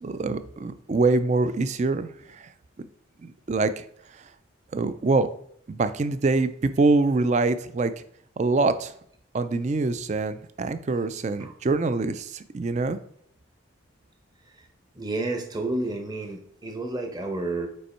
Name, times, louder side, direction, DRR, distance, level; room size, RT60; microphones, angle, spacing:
voice 1, 0.0-2.5 3.2-3.8 4.7-5.3 5.7-7.9 8.4-8.9 9.3-13.0, right 3 dB, 35° right, 12 dB, 0.3 m, -24 dB
voice 2, 15.0-17.7, right 2 dB, 20° right, 3 dB, 0.8 m, -30 dB
5.4 x 4.3 x 4.3 m, 0.66 s
head